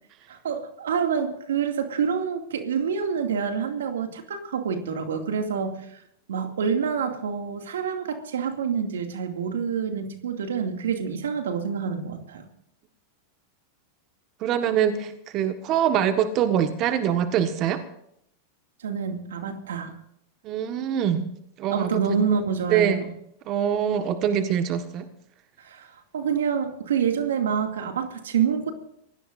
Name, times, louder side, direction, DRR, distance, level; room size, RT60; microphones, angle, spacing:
voice 1, 0.3-6.0 6.3-12.5 18.8-19.9 21.7-23.1 25.6-25.9 26.1-28.7, right 7 dB, 85° right, 5 dB, 2.4 m, -27 dB
voice 2, 14.4-17.8 20.4-21.2 21.6-22.2 22.7-23.0 23.5-25.1, right 9 dB, 45° right, 8 dB, 1.5 m, -24 dB
26.0 x 17.5 x 2.6 m, 0.74 s
hypercardioid pair, 110°, 0 cm